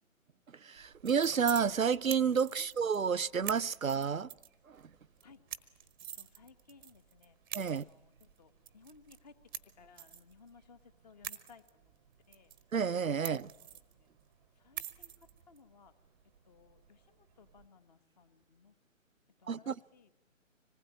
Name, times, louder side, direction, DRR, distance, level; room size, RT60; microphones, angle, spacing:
voice 1, 0.6-4.3 4.7-4.8 7.5-7.8 12.7-13.5 19.5-19.7, right 6 dB, 80° right, 0.8 m, -30 dB
sound 1, 0.8-17.7, right 10 dB, 15° right, 1.0 m, -48 dB
voice 2, 6.2-7.4 7.7-11.9 12.3-12.5 13.6-13.7 14.0-14.1 14.6-15.9 16.4-18.7 19.4-20.1, left 5 dB, 30° left, 1.9 m, -61 dB
25.5 x 19.5 x 9.2 m
figure-of-eight pair, 145°, 40 cm